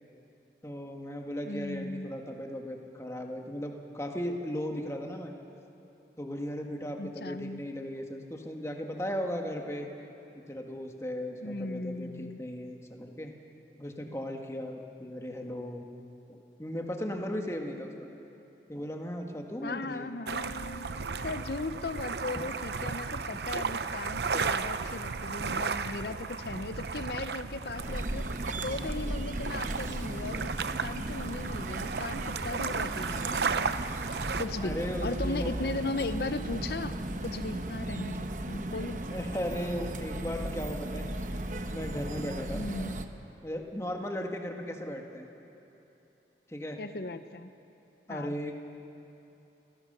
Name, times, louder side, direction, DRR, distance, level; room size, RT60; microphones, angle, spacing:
voice 1, 0.6-5.3 6.2-9.9 10.3-13.3 13.8-15.9 16.3-18.1 18.7-20.1 21.2-21.3 22.3-22.4 34.6-35.5 39.1-41.1 41.7-42.6 43.4-45.3 46.5-46.8 48.1-48.5, equal, 15° left, 2 dB, 1.6 m, -36 dB
voice 2, 1.5-2.1 7.0-7.6 11.4-12.4 19.6-28.3 28.6-30.5 30.8-33.7 34.4-39.0 42.5-43.0 46.8-47.5 48.1-48.4, left 2 dB, 65° left, 11 dB, 0.8 m, -37 dB
sound 1, 20.3-22.8, right 2 dB, 80° left, 1.0 m, -50 dB
sound 2, 20.3-34.5, right 5 dB, 70° right, 0.7 m, -34 dB
sound 3, 27.8-43.1, right 1 dB, 45° right, 1.0 m, -36 dB
29.0 x 17.0 x 6.7 m, 2.9 s
head